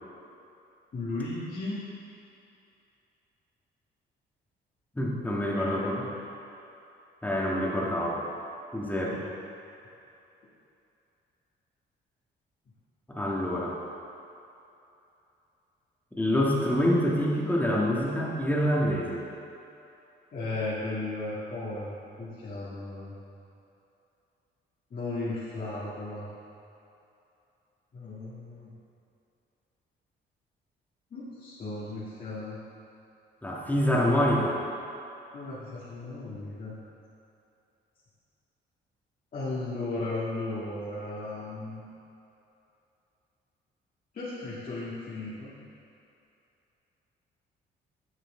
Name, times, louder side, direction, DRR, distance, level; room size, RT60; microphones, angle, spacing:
voice 1, 0.9-1.8 5.5-6.3 9.0-9.3 13.7-13.8 20.3-23.2 24.9-26.3 27.9-28.7 31.1-32.6 35.3-36.8 39.3-41.8 44.1-45.5, left 2 dB, 45° left, -11 dB, 2.0 m, -35 dB
voice 2, 5.0-6.1 7.2-8.2 8.7-9.2 13.1-13.8 16.1-19.2 33.4-34.6, equal, 10° left, -4 dB, 1.7 m, -26 dB
9.8 x 6.6 x 3.7 m, 2.8 s
cardioid pair, 90°, 20 cm